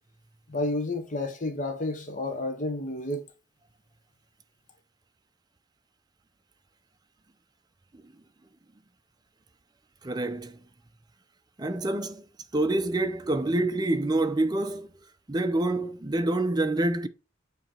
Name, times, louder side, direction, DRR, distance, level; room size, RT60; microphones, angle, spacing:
voice 1, 0.5-3.3, left 2 dB, 40° left, 1.0 m, -31 dB
voice 2, 10.0-10.6 11.6-12.3 12.5-14.9 15.3-17.1, right 2 dB, 20° right, 0.5 m, -27 dB
7.5 x 2.9 x 4.4 m
head